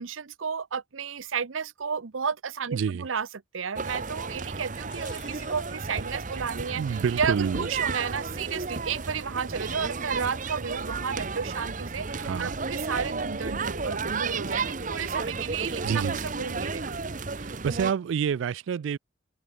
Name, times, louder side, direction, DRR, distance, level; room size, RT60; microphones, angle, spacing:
voice 1, 0.0-3.3 3.5-16.8, right 6 dB, 90° right, 0.8 m, -32 dB
voice 2, 2.7-3.1 6.8-7.7 12.1-12.5 15.8-16.2 17.4-19.0, right 7 dB, 75° right, 0.3 m, -28 dB
sound 1, 3.8-17.9, right 4 dB, 40° right, 1.0 m, -33 dB
sound 2, 4.9-7.5, left 11 dB, 65° left, 3.0 m, -55 dB
open air
head